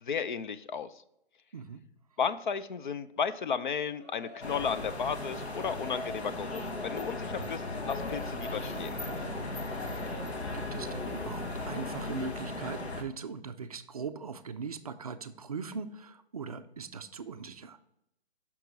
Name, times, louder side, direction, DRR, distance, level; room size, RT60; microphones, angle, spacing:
voice 1, 0.0-0.9 2.2-9.0, left 6 dB, 50° left, 12 dB, 0.5 m, -34 dB
voice 2, 1.5-1.9 7.3-7.5 9.7-10.1 10.5-17.8, right 5 dB, 35° right, 10 dB, 0.4 m, -40 dB
Crowd, 3.8-12.3, right 1 dB, 5° left, 0.9 m, -52 dB
sound 1, 4.4-13.0, left 2 dB, 85° left, 1.4 m, -37 dB
sound 2, 8.0-12.0, left 1 dB, 25° left, 2.9 m, -43 dB
6.1 x 5.9 x 3.9 m, 0.81 s
hypercardioid pair, 155°, 32 cm